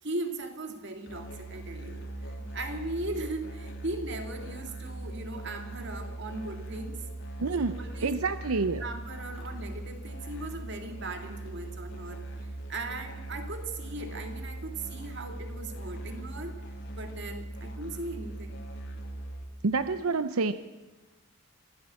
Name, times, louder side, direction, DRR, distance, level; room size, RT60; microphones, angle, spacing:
voice 1, 0.0-7.0 7.5-8.2 8.8-16.6 17.0-18.6, right 2 dB, 55° right, 5 dB, 2.4 m, -38 dB
Musical instrument, 1.1-19.4, right 2 dB, 55° left, 3.2 m, -40 dB
voice 2, 7.4-8.8 19.6-20.5, right 4 dB, 85° right, 12 dB, 0.7 m, -28 dB
25.0 x 15.0 x 7.7 m, 1.2 s
head